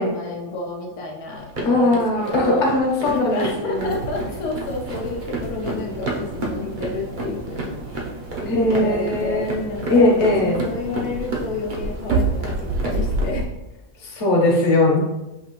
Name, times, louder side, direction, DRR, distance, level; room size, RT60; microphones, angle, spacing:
voice 1, 0.0-2.7 3.1-8.1 8.4-13.5, left 3 dB, 85° left, -1 dB, 1.1 m, -31 dB
sound 1, 1.3-13.2, right 2 dB, 45° right, 0.7 m, -32 dB
voice 2, 1.6-3.9 8.5-9.6 9.9-10.6 14.0-15.0, left 2 dB, 55° left, -1 dB, 1.2 m, -19 dB
sound 2, 3.8-13.5, right 3 dB, 70° right, 1.0 m, -30 dB
5.7 x 2.8 x 3.0 m, 1.0 s
omnidirectional pair, 1.5 m